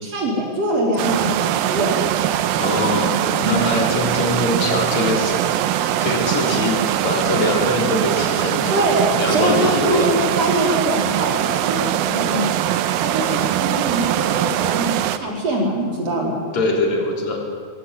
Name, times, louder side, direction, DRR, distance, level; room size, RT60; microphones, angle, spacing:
voice 1, 0.0-2.0 3.3-3.7 8.7-12.5 13.0-16.4, right 1 dB, 40° right, -1 dB, 5.1 m, -23 dB
sound 1, 1.0-15.2, right 12 dB, 75° right, 2.5 m, -21 dB
voice 2, 2.5-5.4 6.0-8.8 9.2-10.1 16.5-17.4, left 2 dB, 45° left, 1 dB, 4.7 m, -22 dB
21.5 x 18.0 x 9.5 m, 2.1 s
omnidirectional pair, 4.5 m